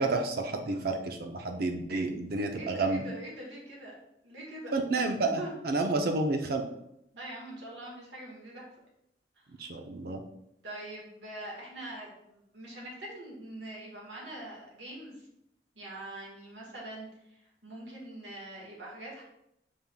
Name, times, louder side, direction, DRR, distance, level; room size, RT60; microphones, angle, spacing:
voice 1, 0.0-3.0 4.7-6.6 9.6-10.2, right 3 dB, 60° right, 5 dB, 0.5 m, -30 dB
voice 2, 2.5-3.9 4.2-5.1 5.4-5.5 7.1-8.7 10.6-15.2 15.7-19.2, right 1 dB, 80° right, -3 dB, 1.5 m, -43 dB
5.5 x 3.5 x 2.2 m, 0.79 s
head